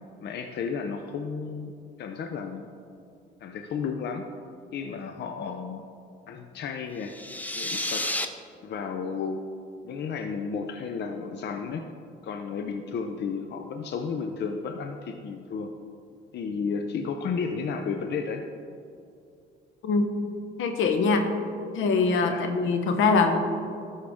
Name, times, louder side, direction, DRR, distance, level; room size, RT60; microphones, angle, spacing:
voice 1, 0.2-1.7 2.0-2.7 3.4-4.3 4.7-5.8 6.3-7.2 7.5-8.1 8.6-9.4 9.8-11.9 12.2-15.7 16.3-18.4 22.2-22.5, left 5 dB, 60° left, 5 dB, 0.6 m, -33 dB
sound 1, 7.0-8.3, left 1 dB, 10° left, 0.6 m, -31 dB
voice 2, 20.6-21.3 21.7-23.4, left 4 dB, 80° left, 6 dB, 0.9 m, -23 dB
13.0 x 5.6 x 3.6 m, 2.5 s
cardioid pair, 90°, 20 cm